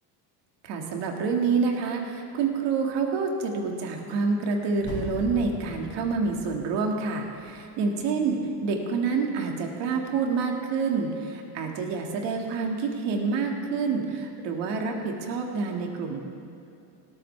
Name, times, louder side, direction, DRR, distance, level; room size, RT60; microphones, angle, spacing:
voice 1, 0.6-16.2, right 4 dB, 70° right, 2 dB, 2.0 m, -27 dB
sound 1, 4.8-7.7 8.0-8.1, left 1 dB, 40° left, 3.2 m, -40 dB
18.0 x 13.5 x 3.4 m, 2.6 s
cardioid pair, 125°, 44 cm